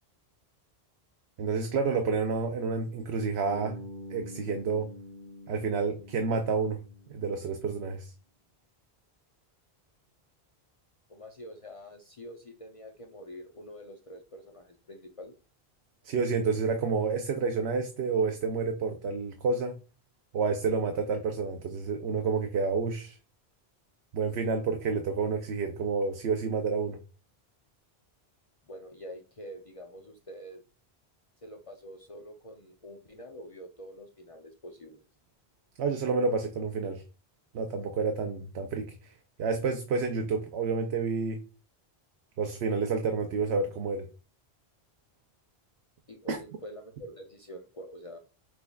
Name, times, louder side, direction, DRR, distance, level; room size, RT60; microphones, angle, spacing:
voice 1, 1.4-3.8 4.1-4.9 5.5-6.8 7.1-8.1 16.0-19.8 20.3-23.2 24.1-27.0 35.8-37.0 37.5-39.1 39.4-41.4 42.4-44.1 46.3-46.4, right 4 dB, 85° right, 0.9 m, -29 dB
Bass guitar, 3.5-7.6, left 1 dB, 20° left, 1.3 m, -46 dB
voice 2, 11.1-15.3 28.7-30.6 31.4-35.0 46.1-48.2, equal, 40° left, 0.5 m, -46 dB
5.9 x 3.5 x 2.3 m
omnidirectional pair, 1.1 m